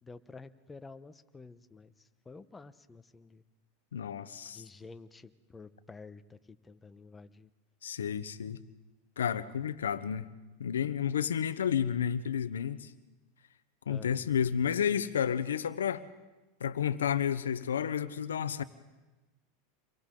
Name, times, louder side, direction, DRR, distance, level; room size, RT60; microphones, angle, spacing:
voice 1, 0.0-3.4 4.5-7.5 13.9-14.3, left 4 dB, 15° left, 10 dB, 1.1 m, -50 dB
voice 2, 3.9-4.6 7.8-8.6 9.2-10.2 10.6-12.9 13.9-16.0 16.6-18.6, left 8 dB, 90° left, 13 dB, 1.0 m, -31 dB
29.0 x 23.0 x 3.9 m, 1.1 s
hypercardioid pair, 105°, 0 cm